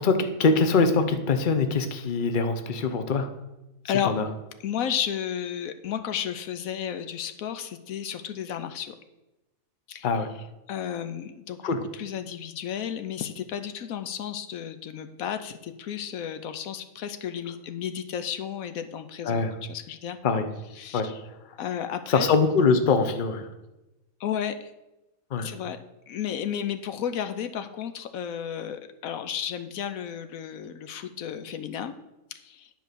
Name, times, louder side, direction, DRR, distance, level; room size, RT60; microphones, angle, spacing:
voice 1, 0.0-3.3 4.0-4.2 10.0-10.3 11.6-11.8 19.2-19.5 20.2-20.5 20.9-21.1 22.1-23.5 25.3-25.5, left 4 dB, 40° left, 8 dB, 0.9 m, -23 dB
voice 2, 4.6-8.9 9.9-10.1 10.7-19.4 19.7-20.2 20.8-21.2 21.6-22.3 24.2-24.7 25.4-25.8 26.1-31.9 32.4-32.7, left 9 dB, 85° left, 9 dB, 1.1 m, -33 dB
10.5 x 4.6 x 6.7 m, 0.98 s
omnidirectional pair, 1.5 m